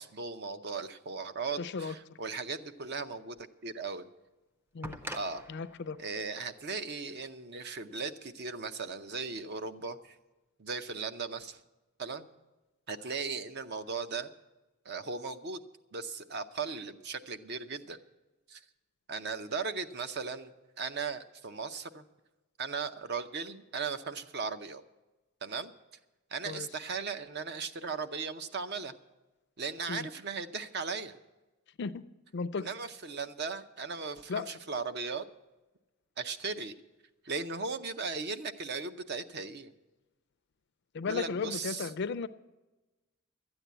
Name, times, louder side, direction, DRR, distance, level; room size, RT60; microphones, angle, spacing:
voice 1, 0.0-4.1 5.1-5.4 6.0-10.2 10.6-11.6 12.0-12.3 12.9-14.3 14.8-15.6 15.9-18.0 18.5-18.6 19.1-22.0 22.6-24.8 25.4-25.7 26.3-28.9 29.6-31.1 32.6-35.2 36.2-36.7 37.2-39.7 41.1-41.9, right 4 dB, 50° right, 10 dB, 0.6 m, -37 dB
voice 2, 1.6-1.9 4.7-5.0 5.5-6.0 26.5-26.7 29.9-30.1 31.8-32.0 32.3-32.7 34.3-34.5 40.9-42.3, left 4 dB, 50° left, 14 dB, 0.4 m, -35 dB
sound 1, 3.4-3.5 4.8-7.7 8.9-9.0, equal, 10° right, 0.6 m, -46 dB
12.5 x 8.9 x 8.1 m, 1.1 s
head